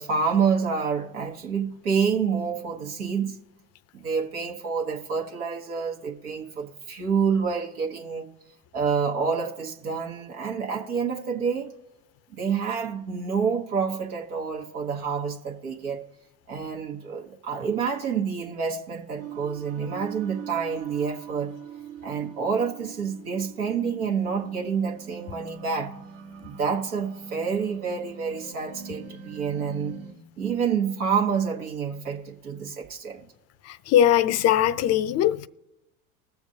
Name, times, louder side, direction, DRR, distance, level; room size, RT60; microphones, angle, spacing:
voice 1, 0.0-3.4 3.9-8.3 8.7-11.7 12.3-16.1 16.5-21.5 22.0-25.9 26.4-30.0 30.4-33.3, right 6 dB, 90° right, 1.2 m, -28 dB
sound 1, 19.2-30.1, right 7 dB, 60° right, 1.3 m, -42 dB
voice 2, 33.7-35.5, left 11 dB, 40° left, 0.4 m, -21 dB
20.5 x 7.1 x 2.7 m
hypercardioid pair, 85°, 44 cm